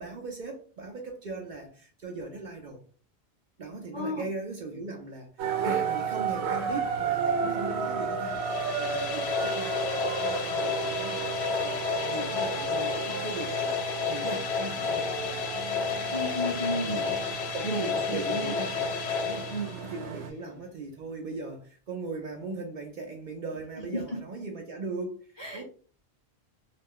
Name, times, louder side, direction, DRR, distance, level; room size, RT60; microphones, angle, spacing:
voice 1, 0.0-2.8 3.6-5.3 5.6-9.8 10.2-11.3 11.6-11.8 12.1-13.7 14.1-15.2 16.5-17.2 17.5-18.9 19.2-25.6, right 3 dB, 55° right, 2 dB, 0.6 m, -39 dB
voice 2, 3.9-4.3 12.1-12.3 16.1-17.2 17.6-18.6 19.5-19.7 25.4-25.6, equal, 30° left, -2 dB, 0.7 m, -33 dB
sound 1, 5.4-20.3, right 6 dB, 90° right, 0.9 m, -33 dB
sound 2, 8.2-20.1, left 6 dB, 85° left, 0.9 m, -31 dB
2.4 x 2.1 x 3.5 m, 0.41 s
omnidirectional pair, 1.1 m